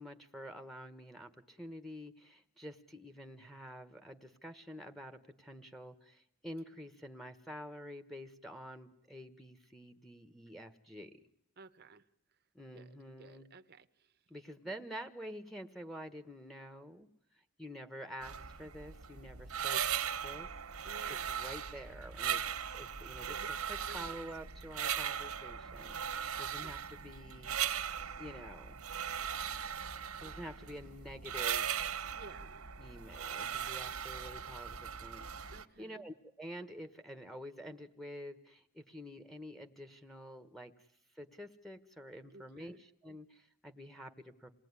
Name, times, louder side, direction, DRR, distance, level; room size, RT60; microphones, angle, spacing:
voice 1, 0.0-11.1 12.5-13.5 14.3-17.1 17.6-19.9 20.2-20.5 21.1-22.4 22.7-26.0 26.4-27.6 28.2-28.8 30.2-31.8 32.8-40.7 41.1-44.5, equal, ahead, 7 dB, 1.3 m, -48 dB
voice 2, 11.6-12.0 12.7-13.9 14.6-14.7 19.7-19.8 20.8-21.4 23.3-23.5 23.9-24.2 26.6-26.7 32.1-32.8 35.5-36.0 42.2-42.8, right 3 dB, 45° right, 9 dB, 1.0 m, -54 dB
sound 1, 18.2-35.6, right 8 dB, 85° right, 1.5 m, -39 dB
28.0 x 19.0 x 9.7 m, 0.78 s
head